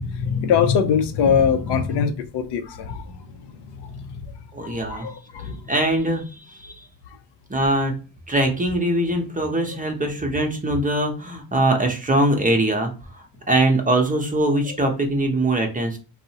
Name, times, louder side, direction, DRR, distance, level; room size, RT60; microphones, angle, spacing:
voice 1, 0.0-3.6 3.9-4.0 4.6-5.6, left 7 dB, 65° left, 0.5 m, -22 dB
voice 2, 4.5-5.1 5.4-6.9 7.5-7.9 8.3-16.0, right 1 dB, 20° right, 0.7 m, -22 dB
2.6 x 2.0 x 2.7 m
cardioid pair, 75°, 45 cm